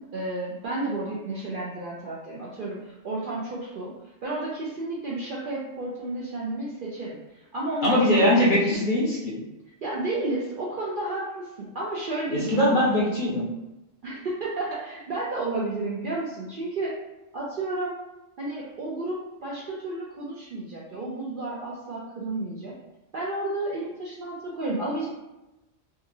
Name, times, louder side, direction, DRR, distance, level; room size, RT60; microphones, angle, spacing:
voice 1, 0.0-3.9 4.2-8.8 9.8-12.9 14.0-16.9 17.3-17.9 18.4-22.8 23.1-25.1, right 2 dB, 60° right, -6 dB, 0.5 m, -32 dB
voice 2, 7.8-9.4 12.3-13.5, left 1 dB, 50° left, -6 dB, 0.7 m, -21 dB
2.9 x 2.4 x 2.5 m, 0.97 s
omnidirectional pair, 1.3 m